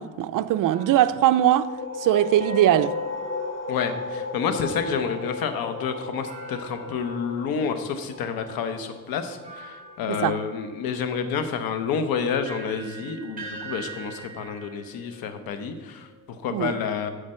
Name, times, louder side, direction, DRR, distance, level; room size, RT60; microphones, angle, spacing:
voice 1, 0.0-1.7 2.0-3.0 10.1-10.4 16.5-16.8, right 12 dB, 65° right, 0.5 m, -21 dB
sound 1, 0.7-4.2 6.3-7.7 8.5-8.6 9.4-16.3, right 3 dB, 25° right, 2.6 m, -45 dB
sound 2, 1.3-10.7, left 3 dB, 35° left, 1.0 m, -35 dB
voice 2, 3.7-17.1, left 6 dB, 80° left, 1.1 m, -29 dB
14.5 x 5.1 x 4.4 m
cardioid pair, 115°, 35 cm